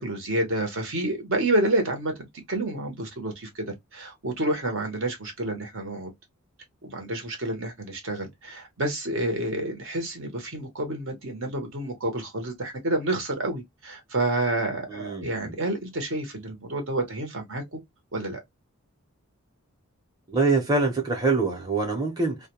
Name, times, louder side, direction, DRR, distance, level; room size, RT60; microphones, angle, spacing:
voice 1, 0.0-2.1 2.5-6.1 6.8-17.8 18.1-18.4, right 1 dB, 60° right, 0.9 m, -29 dB
voice 2, 14.9-15.5 20.3-22.5, right 3 dB, 15° right, 0.7 m, -25 dB
2.2 x 2.2 x 2.8 m
head